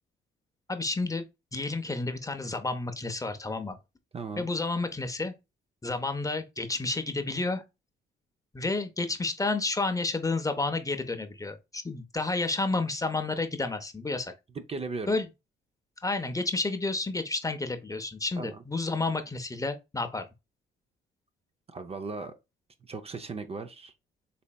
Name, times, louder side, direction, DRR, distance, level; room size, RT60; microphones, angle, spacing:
voice 1, 0.7-1.2 1.5-3.8 4.4-5.3 5.8-7.6 8.5-14.3 15.1-15.3 16.0-20.2, left 3 dB, 15° left, 0.6 m, -30 dB
voice 2, 4.1-4.5 14.7-15.1 18.4-18.5 21.7-22.3 22.8-23.9, right 4 dB, 30° right, 0.5 m, -37 dB
4.1 x 3.2 x 2.2 m
cardioid pair, 90°, 20 cm